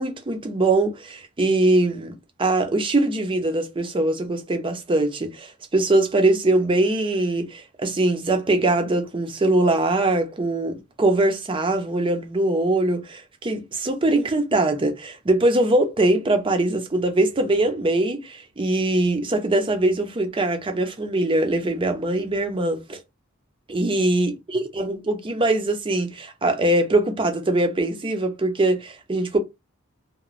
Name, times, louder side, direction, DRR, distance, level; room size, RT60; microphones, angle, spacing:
voice 1, 0.0-23.0 23.7-29.4, right 2 dB, 25° right, 0.5 m, -22 dB
3.0 x 2.1 x 2.4 m
head